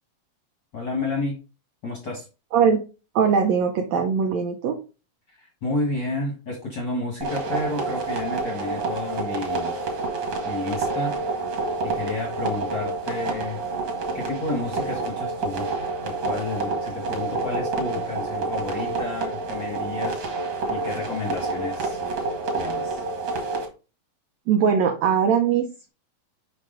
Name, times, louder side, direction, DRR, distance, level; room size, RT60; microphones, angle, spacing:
voice 1, 0.7-1.4 1.8-2.3 5.3-9.8 10.4-11.2 11.8-13.6 14.1-15.7 16.0-20.3 20.7-22.0 22.6-23.0, left 3 dB, 45° left, -1 dB, 1.5 m, -31 dB
voice 2, 2.5-2.8 3.1-4.8 24.5-25.9, right 6 dB, 85° right, 5 dB, 1.5 m, -21 dB
sound 1, 7.2-23.7, right 3 dB, 50° right, 2.3 m, -28 dB
6.1 x 5.4 x 3.8 m, 0.33 s
omnidirectional pair, 4.1 m